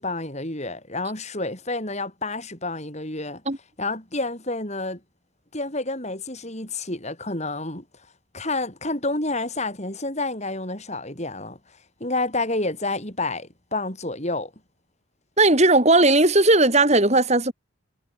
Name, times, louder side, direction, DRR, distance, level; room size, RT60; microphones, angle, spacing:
voice 1, 0.0-3.4 3.8-5.0 5.5-7.9 8.3-14.5, left 2 dB, 35° left, 7.1 m, -29 dB
voice 2, 15.4-17.5, right 2 dB, 35° right, 6.2 m, -17 dB
head